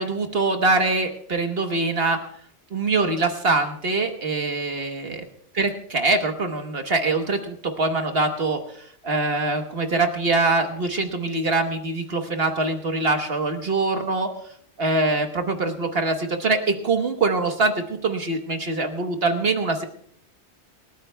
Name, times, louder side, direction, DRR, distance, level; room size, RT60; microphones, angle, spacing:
voice 1, 0.0-2.2 2.7-5.2 5.5-8.6 9.0-14.3 14.8-19.9, right 3 dB, 60° right, 5 dB, 1.4 m, -23 dB
28.0 x 13.5 x 2.2 m, 0.64 s
omnidirectional pair, 1.2 m